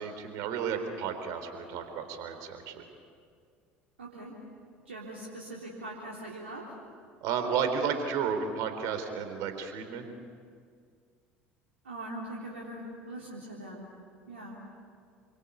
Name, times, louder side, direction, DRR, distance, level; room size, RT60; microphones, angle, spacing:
voice 1, 0.0-2.8 7.2-10.1, right 6 dB, 65° right, 7 dB, 3.8 m, -32 dB
voice 2, 4.0-4.3 4.9-6.6 11.8-13.9 14.3-14.6, right 1 dB, 90° right, -4 dB, 3.6 m, -41 dB
29.0 x 24.0 x 8.5 m, 2.2 s
hypercardioid pair, 65°, 6 cm